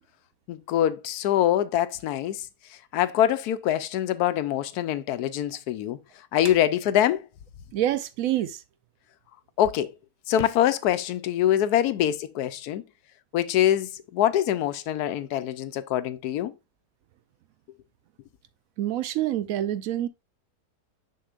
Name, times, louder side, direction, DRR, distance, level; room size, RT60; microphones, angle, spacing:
voice 1, 0.5-2.5 2.9-6.0 6.3-7.2 9.6-9.9 10.3-12.8 13.3-16.5, left 11 dB, 80° left, 1.1 m, -24 dB
voice 2, 7.7-8.6 18.8-20.1, right 12 dB, 70° right, 0.9 m, -26 dB
6.6 x 5.9 x 2.4 m
omnidirectional pair, 1.7 m